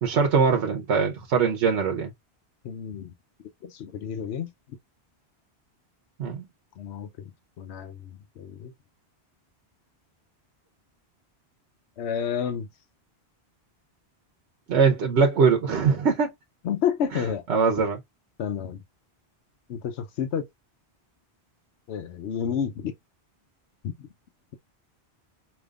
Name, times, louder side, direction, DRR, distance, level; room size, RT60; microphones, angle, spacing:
voice 1, 0.0-2.1 6.2-6.4 14.7-16.3 17.1-17.2 17.5-18.0, right 5 dB, 90° right, 1.1 m, -22 dB
voice 2, 2.6-3.1 3.6-4.5 6.8-7.3 7.6-8.1 8.4-8.7 12.0-12.7 16.6-17.4 18.4-18.8 19.7-20.5 21.9-22.9 23.8-24.1, left 8 dB, 85° left, 0.9 m, -30 dB
5.1 x 2.8 x 2.4 m
omnidirectional pair, 1.1 m